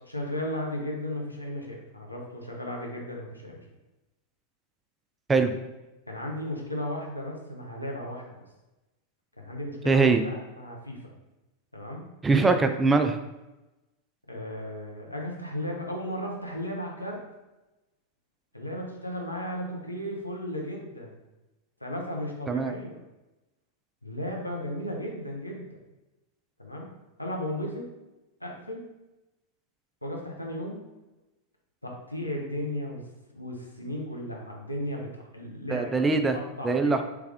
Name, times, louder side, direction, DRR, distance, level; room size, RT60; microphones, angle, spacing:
voice 1, 0.0-3.6 6.1-8.4 9.4-11.1 11.7-12.1 14.3-17.2 18.5-21.2 21.8-23.0 24.0-25.8 26.6-26.9 27.2-27.9 28.4-28.9 30.0-30.8 31.8-33.0 33.3-35.9 36.3-37.0, left 1 dB, 85° left, -1 dB, 0.7 m, -35 dB
voice 2, 9.9-10.2 12.2-13.2 22.5-22.7 35.7-36.4 36.6-37.0, right 3 dB, 15° right, 7 dB, 0.3 m, -22 dB
3.4 x 3.2 x 3.4 m, 1.0 s
figure-of-eight pair, 90°, 0 cm